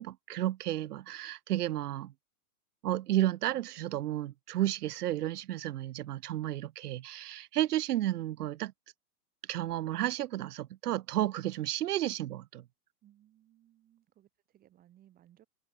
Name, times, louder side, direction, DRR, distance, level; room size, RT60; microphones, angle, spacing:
voice 1, 0.0-2.1 2.8-8.7 9.5-12.6, right 13 dB, 80° right, 0.9 m, -32 dB
voice 2, 13.0-15.5, right 12 dB, 20° right, 7.6 m, -63 dB
hypercardioid pair, 165°, 46 cm